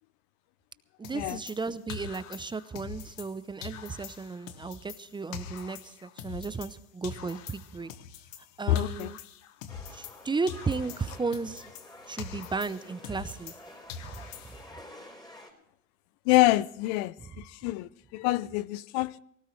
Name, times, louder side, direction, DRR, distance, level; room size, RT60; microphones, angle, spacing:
sound 1, 1.0-3.4 3.6-6.8 7.0-10.2 10.5-13.6 13.9-14.7, left 7 dB, 75° left, 1.5 m, -44 dB
voice 1, 1.0-7.9 8.6-9.2 9.9-11.6 12.1-13.5 14.0-14.2, right 4 dB, 10° right, 0.7 m, -34 dB
voice 2, 8.7-9.1 16.3-19.2, left 18 dB, 60° left, 0.6 m, -26 dB
sound 2, 9.7-15.5, left 1 dB, 10° left, 4.3 m, -50 dB
19.5 x 17.5 x 3.2 m
hypercardioid pair, 100°, 39 cm